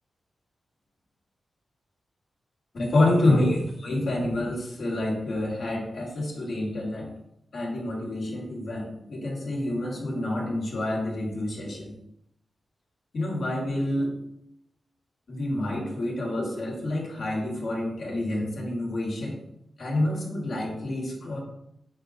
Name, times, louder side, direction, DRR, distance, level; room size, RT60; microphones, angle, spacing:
voice 1, 2.7-7.1 7.5-11.9 13.1-14.1 15.3-19.4 19.8-21.4, left 1 dB, 75° left, -3 dB, 1.3 m, -28 dB
5.3 x 3.8 x 2.5 m, 0.76 s
cardioid pair, 70°, 0 cm